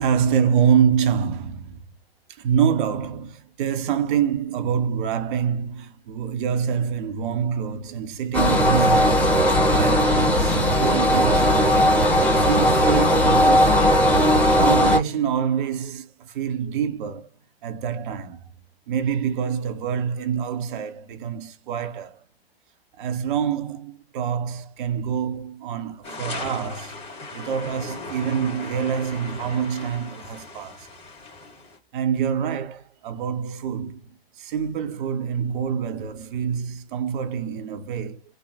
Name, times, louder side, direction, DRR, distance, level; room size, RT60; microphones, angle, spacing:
voice 1, 0.0-1.8 2.3-11.8 12.1-17.3 17.6-18.5 18.9-22.2 23.0-30.9 31.9-34.0 34.4-38.2, right 8 dB, 55° right, 0.6 m, -26 dB
sound 1, 8.3-15.0, equal, 5° left, 1.1 m, -18 dB
sound 2, 26.0-31.8, left 3 dB, 20° left, 1.5 m, -37 dB
3.2 x 2.0 x 2.7 m
figure-of-eight pair, 105°, 31 cm